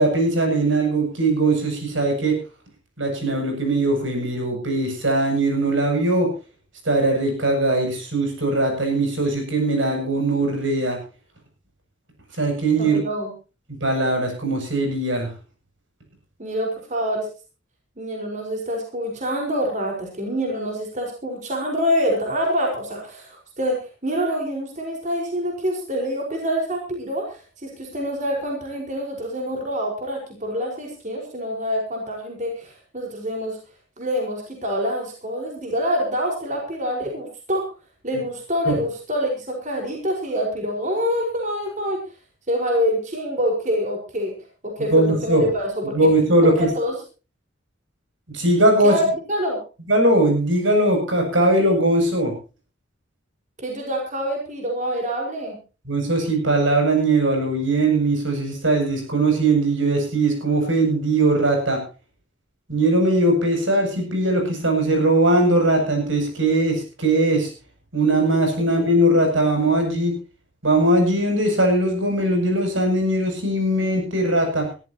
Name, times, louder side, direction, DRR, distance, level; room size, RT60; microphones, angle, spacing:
voice 1, 0.0-2.4 3.0-6.3 6.8-11.0 12.4-13.0 13.8-15.3 38.1-38.2 38.7-38.8 44.9-45.4 45.9-46.7 48.3-48.9 49.9-52.3 55.9-61.8 62.7-67.5 67.9-70.1 70.6-74.7, right 2 dB, 80° right, 3 dB, 7.8 m, -20 dB
voice 2, 12.8-13.3 16.4-17.3 18.0-33.6 34.0-37.7 38.0-42.0 42.5-44.3 44.6-46.1 46.4-46.9 48.8-49.6 53.6-55.6 68.6-68.7, equal, 40° right, 1 dB, 4.9 m, -26 dB
22.0 x 14.0 x 3.0 m, 0.33 s
head